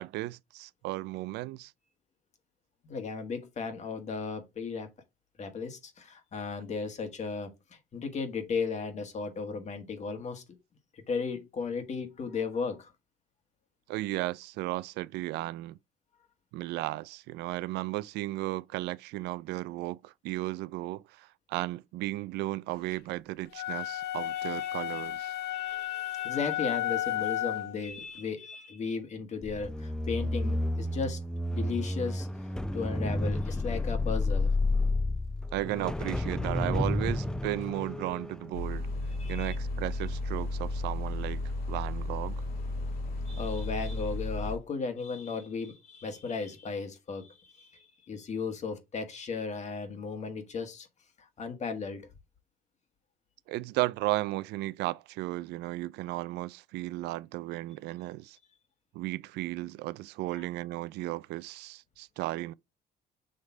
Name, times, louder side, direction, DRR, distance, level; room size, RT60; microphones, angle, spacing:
voice 1, 0.0-1.7 13.9-15.8 16.5-25.3 35.5-38.9 39.3-41.4 41.7-42.4 53.5-58.4 58.9-62.5, right 18 dB, 85° right, 0.4 m, -35 dB
voice 2, 2.8-4.9 5.4-10.4 11.1-12.9 24.3-24.4 25.5-31.2 31.5-32.3 32.7-34.5 39.2-39.5 43.3-50.9 51.2-52.1 60.3-60.5, left 5 dB, 45° left, 1.8 m, -35 dB
sound 1, 23.5-27.8, left 13 dB, 75° left, 0.6 m, -33 dB
sound 2, 29.4-39.7 40.1-40.4, left 2 dB, 5° left, 0.4 m, -31 dB
sound 3, 38.5-44.6, left 2 dB, 60° left, 2.5 m, -34 dB
6.5 x 3.2 x 4.6 m
cardioid pair, 110°, 17 cm